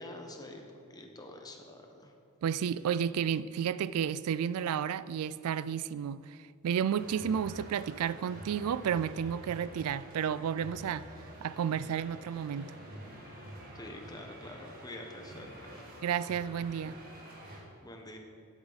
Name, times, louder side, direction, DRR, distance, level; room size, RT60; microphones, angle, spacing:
voice 1, 0.0-2.1 13.7-15.7 17.8-18.2, left 1 dB, 15° left, 1.1 m, -46 dB
voice 2, 2.4-6.4 6.6-11.1 11.4-12.7 16.0-17.0, right 8 dB, 80° right, 0.3 m, -32 dB
sound 1, 6.9-17.6, right 1 dB, 40° right, 2.1 m, -48 dB
16.0 x 8.2 x 4.1 m
head